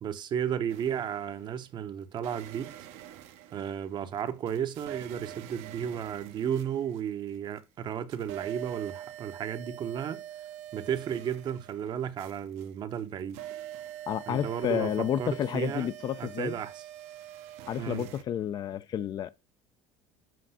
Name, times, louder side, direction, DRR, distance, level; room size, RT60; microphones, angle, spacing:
voice 1, 0.0-2.7 3.5-10.2 10.7-13.4 14.3-15.9 16.2-16.8 17.8-18.1, right 8 dB, 40° right, 0.7 m, -33 dB
sound 1, 0.7-1.6 2.2-7.6 7.9-18.2, right 12 dB, 70° right, 0.9 m, -45 dB
voice 2, 14.1-16.5 17.7-19.3, left 10 dB, 40° left, 0.4 m, -30 dB
7.6 x 2.6 x 5.5 m
cardioid pair, 120°, 11 cm